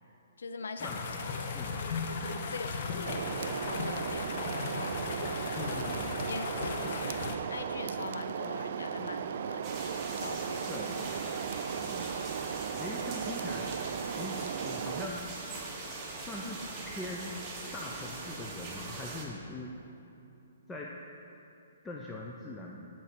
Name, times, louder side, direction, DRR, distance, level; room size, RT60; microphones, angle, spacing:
voice 1, 0.4-1.3 2.1-5.0 5.7-9.8 10.2-10.7, left 4 dB, 80° left, 8 dB, 0.5 m, -43 dB
sound 1, 0.8-7.4, left 4 dB, 50° left, 0.8 m, -36 dB
sound 2, 3.1-15.1, right 7 dB, 55° right, 0.3 m, -36 dB
voice 2, 5.5-6.2 10.7-11.5 11.7-12.1 12.8-13.7 14.1-15.3 16.2-17.4 17.7-19.7 20.7-20.9 21.8-22.9, left 2 dB, 10° left, -2 dB, 0.5 m, -42 dB
sound 3, 9.6-19.2, right 3 dB, 20° right, 1.1 m, -41 dB
11.0 x 4.6 x 4.4 m, 2.8 s
hypercardioid pair, 140°, 0 cm